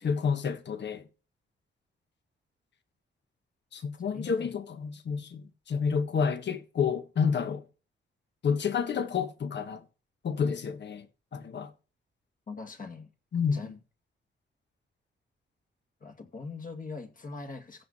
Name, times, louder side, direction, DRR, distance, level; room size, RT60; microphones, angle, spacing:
voice 1, 0.0-1.0 3.7-7.6 8.4-9.8 10.2-11.0 11.3-11.7 13.3-13.7, left 6 dB, 60° left, 1.5 m, -29 dB
voice 2, 4.1-4.5 12.5-13.1 13.5-13.7 16.0-17.8, left 4 dB, 40° left, 2.3 m, -42 dB
15.5 x 6.7 x 4.3 m
wide cardioid pair, 135°, 21 cm